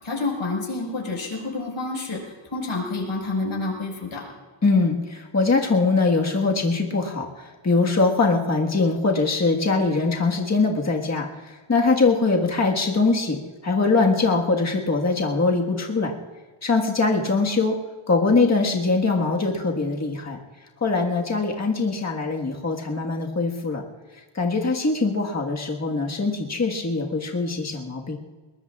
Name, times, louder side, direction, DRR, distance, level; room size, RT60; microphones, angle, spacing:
voice 1, 0.0-4.2, left 3 dB, 70° left, 0 dB, 5.2 m, -29 dB
voice 2, 4.6-13.4 13.6-16.1 16.6-17.8 18.1-20.4 20.8-23.8 24.3-28.2, left 3 dB, 30° left, 0 dB, 1.6 m, -22 dB
22.0 x 20.5 x 2.4 m, 1.3 s
wide cardioid pair, 100°, 50 cm